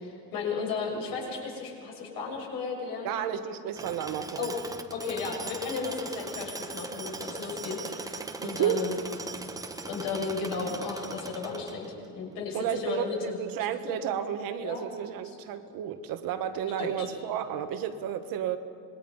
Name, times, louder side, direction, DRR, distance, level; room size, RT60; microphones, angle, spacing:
voice 1, 0.0-3.1 4.4-4.6 4.9-8.9 9.9-13.4 13.9-14.0 14.6-14.9 16.8-17.1, left 4 dB, 55° left, -1 dB, 6.6 m, -34 dB
voice 2, 3.0-4.5 8.4-8.8 12.5-18.6, right 9 dB, 55° right, 8 dB, 1.4 m, -32 dB
Tools, 3.8-12.1, right 3 dB, 10° right, 0.8 m, -40 dB
26.0 x 21.0 x 5.5 m, 2.5 s
cardioid pair, 155°, 41 cm